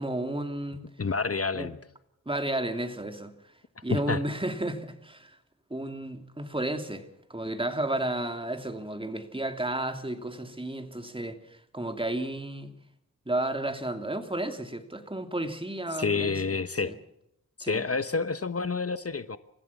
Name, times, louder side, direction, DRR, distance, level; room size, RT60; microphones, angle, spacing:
voice 1, 0.0-0.9 1.5-1.7 2.3-3.3 3.8-5.4 5.7-12.7 13.3-16.4 16.8-16.9 17.6-17.8, right 1 dB, 15° right, 2.8 m, -32 dB
voice 2, 1.0-1.8 3.9-4.2 16.0-16.9 17.6-19.4, left 4 dB, 45° left, 1.1 m, -28 dB
30.0 x 15.0 x 7.1 m
cardioid pair, 60°, 33 cm